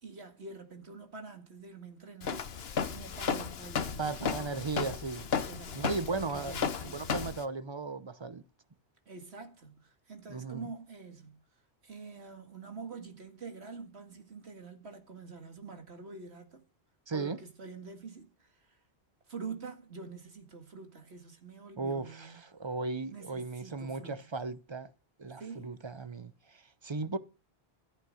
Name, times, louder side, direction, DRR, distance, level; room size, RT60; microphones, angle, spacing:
voice 1, 0.0-4.4 5.5-5.8 6.2-7.1 9.1-11.4 11.8-16.6 17.1-18.8 19.3-22.4 23.1-24.1 25.4-25.7, right 4 dB, 85° right, 2.2 m, -46 dB
Walk footsteps, 2.2-7.4, left 6 dB, 70° left, 1.2 m, -34 dB
voice 2, 4.0-5.3 5.7-8.4 10.3-10.7 17.1-17.4 21.8-24.9 25.2-27.2, right 3 dB, 30° right, 0.7 m, -36 dB
14.0 x 9.1 x 6.4 m
omnidirectional pair, 1.1 m